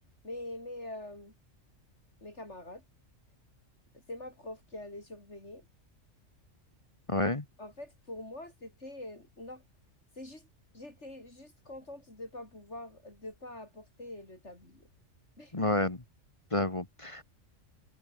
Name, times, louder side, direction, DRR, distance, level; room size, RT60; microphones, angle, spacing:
voice 1, 0.2-1.3 2.2-2.8 4.1-5.7 7.6-9.6 10.2-10.5 10.7-14.9 15.4-15.6, left 1 dB, 60° left, 6.6 m, -44 dB
voice 2, 7.1-7.4 15.5-16.0 16.5-17.2, left 2 dB, 25° left, 1.5 m, -29 dB
omnidirectional pair, 1.3 m